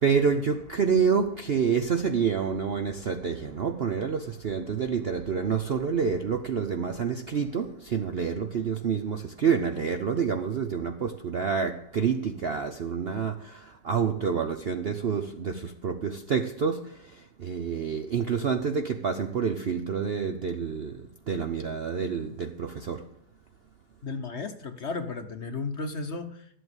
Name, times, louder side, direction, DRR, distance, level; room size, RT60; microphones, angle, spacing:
voice 1, 0.0-23.1, right 6 dB, 55° right, 0.7 m, -28 dB
voice 2, 24.0-26.5, left 4 dB, 45° left, 1.1 m, -34 dB
12.0 x 8.0 x 8.0 m
omnidirectional pair, 1.8 m